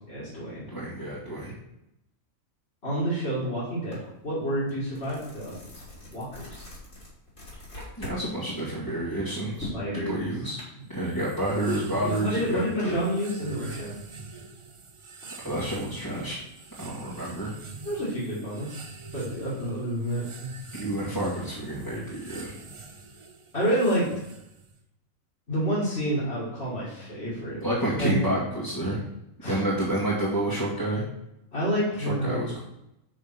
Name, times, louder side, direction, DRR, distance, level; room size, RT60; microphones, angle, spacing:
voice 1, 0.1-0.7 2.8-5.5 6.1-6.6 9.7-10.3 12.0-13.9 17.8-18.8 19.1-20.5 23.5-24.1 25.5-27.6 27.9-28.3 29.4-29.6 31.5-32.6, equal, 50° left, -9 dB, 2.6 m, -29 dB
voice 2, 0.7-1.5 8.0-10.6 10.9-13.0 15.4-16.4 16.8-17.5 20.7-22.5 27.6-29.0 29.5-31.0 32.0-32.6, right 1 dB, 15° left, -9 dB, 1.9 m, -29 dB
sound 1, 3.9-4.1 4.5-8.2 8.6-10.6, left 1 dB, 75° left, 3.7 m, -42 dB
sound 2, 10.9-24.8, right 3 dB, 40° right, 0.4 m, -45 dB
6.1 x 5.6 x 5.9 m, 0.85 s
omnidirectional pair, 1.4 m